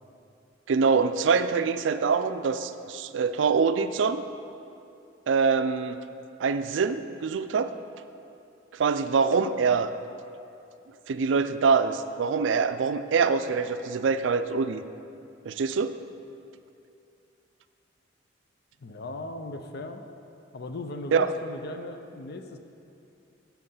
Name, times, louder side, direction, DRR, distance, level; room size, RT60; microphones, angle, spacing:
voice 1, 0.7-4.2 5.3-6.0 6.4-7.7 8.7-9.9 11.1-14.8 15.5-16.0 21.1-21.3, right 5 dB, 70° right, 11 dB, 0.4 m, -24 dB
voice 2, 18.8-20.0 20.5-22.6, left 2 dB, 60° left, 6 dB, 0.6 m, -38 dB
7.7 x 7.1 x 5.6 m, 2.7 s
head